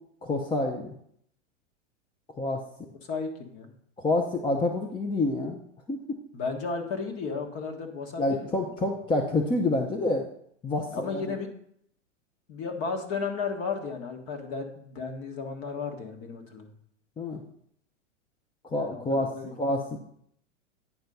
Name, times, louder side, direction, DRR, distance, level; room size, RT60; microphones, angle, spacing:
voice 1, 0.2-0.9 2.4-2.6 4.0-5.6 5.9-6.2 8.2-10.3 10.6-11.3 17.2-17.4 18.6-20.0, left 2 dB, 15° left, 2 dB, 0.7 m, -28 dB
voice 2, 3.0-3.7 6.3-8.9 10.9-11.5 12.5-16.7 18.7-19.5, left 5 dB, 35° left, 4 dB, 1.6 m, -34 dB
9.5 x 4.4 x 5.4 m, 0.67 s
hypercardioid pair, 115°, 37 cm